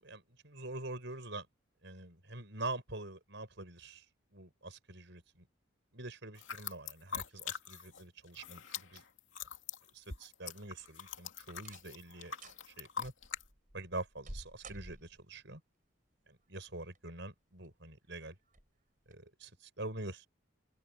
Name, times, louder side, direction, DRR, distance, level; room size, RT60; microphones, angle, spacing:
voice 1, 0.0-1.5 1.8-4.0 4.3-5.5 5.9-9.0 9.9-12.3 12.7-13.1 13.7-15.6 16.3-18.3 19.1-19.5 19.8-20.3, right 2 dB, 60° right, 6.8 m, -45 dB
sound 1, 6.4-8.0 8.3-13.4, left 7 dB, 70° left, 2.8 m, -43 dB
sound 2, 10.6-11.1 11.6-12.0 12.3-12.6 13.2-15.4 16.6-17.2 17.6-17.7 18.5-18.7 19.1-19.2, right 1 dB, 40° right, 5.7 m, -51 dB
head